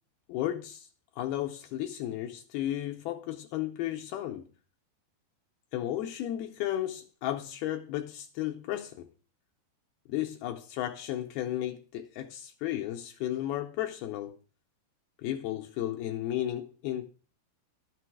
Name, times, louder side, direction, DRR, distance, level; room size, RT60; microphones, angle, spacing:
voice 1, 0.3-0.9 1.2-4.5 5.7-9.1 10.1-14.4 15.2-17.0, left 12 dB, 80° left, 2.3 m, -34 dB
12.0 x 6.8 x 4.6 m
omnidirectional pair, 4.9 m